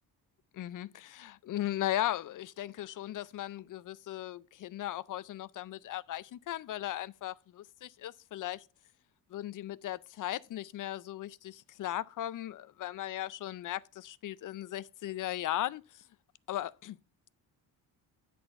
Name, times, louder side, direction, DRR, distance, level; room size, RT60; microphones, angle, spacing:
voice 1, 0.5-8.6 9.3-15.8 16.5-17.0, left 13 dB, 50° left, 0.4 m, -37 dB
9.8 x 4.3 x 5.5 m
cardioid pair, 125°, 41 cm